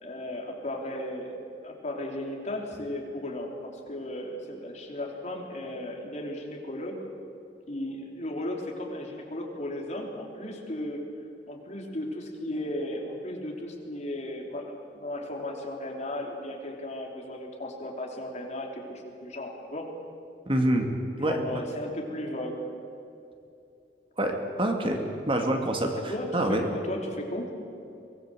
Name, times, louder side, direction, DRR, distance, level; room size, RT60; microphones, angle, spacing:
voice 1, 0.0-1.3 1.6-7.0 7.7-11.1 11.5-19.9 21.2-22.6 25.9-27.5, left 1 dB, 40° left, 1 dB, 3.5 m, -35 dB
voice 2, 20.5-20.9 21.2-21.6 24.2-26.6, right 1 dB, 30° right, 3 dB, 2.4 m, -27 dB
24.0 x 19.0 x 7.8 m, 2.7 s
head